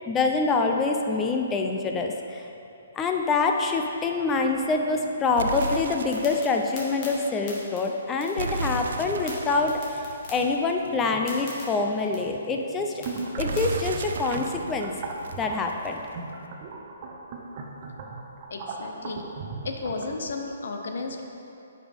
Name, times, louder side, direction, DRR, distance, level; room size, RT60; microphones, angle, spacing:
voice 1, 0.1-2.4 3.0-10.0 10.3-12.9 13.4-14.9 15.4-16.0, left 3 dB, 15° left, 3 dB, 0.5 m, -25 dB
sound 1, 5.3-13.6, left 2 dB, 35° left, 1.8 m, -45 dB
sound 2, 5.4-6.6 8.4-11.1 13.4-16.1, right 3 dB, 70° right, 0.5 m, -34 dB
sound 3, 13.0-20.2, right 4 dB, 40° right, 0.7 m, -38 dB
voice 2, 18.5-19.2 19.6-21.3, left 3 dB, 70° left, 3 dB, 0.8 m, -33 dB
9.3 x 5.4 x 3.6 m, 2.7 s
hypercardioid pair, 150°, 0 cm